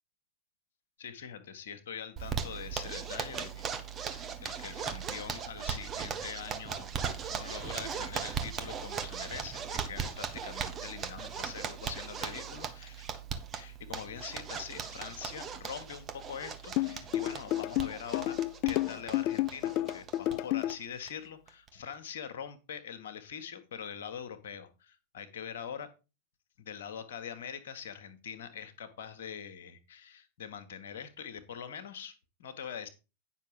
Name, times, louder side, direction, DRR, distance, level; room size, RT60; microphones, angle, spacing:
voice 1, 1.0-3.7 4.1-6.9 7.3-13.1 13.5-18.4 18.6-25.9 26.6-32.9, left 7 dB, 60° left, 10 dB, 1.4 m, -43 dB
Zipper (clothing), 2.2-20.3 20.7-20.8 21.1-21.2 21.5-21.9, right 7 dB, 25° right, 1.2 m, -38 dB
sound 1, 16.8-20.7, left 15 dB, 40° left, 0.4 m, -30 dB
9.8 x 5.8 x 4.9 m, 0.30 s
figure-of-eight pair, 90°, 0 cm